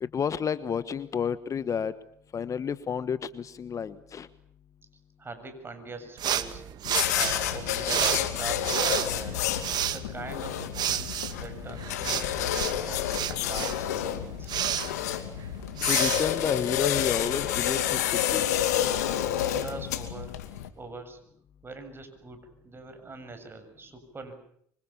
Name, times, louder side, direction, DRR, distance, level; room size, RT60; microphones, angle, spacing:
voice 1, 0.0-1.9 2.3-4.3 15.8-18.5, left 7 dB, 40° left, 14 dB, 1.3 m, -30 dB
voice 2, 5.2-6.6 7.1-9.4 9.8-14.5 19.4-20.3 20.8-21.2 21.6-24.3, right 3 dB, 25° right, 8 dB, 7.3 m, -42 dB
sound 1, 6.2-17.1, right 10 dB, 55° right, 2.0 m, -32 dB
sound 2, 6.8-20.7, left 11 dB, 85° left, 2.5 m, -29 dB
26.0 x 25.0 x 7.2 m, 0.68 s
hypercardioid pair, 70°, 9 cm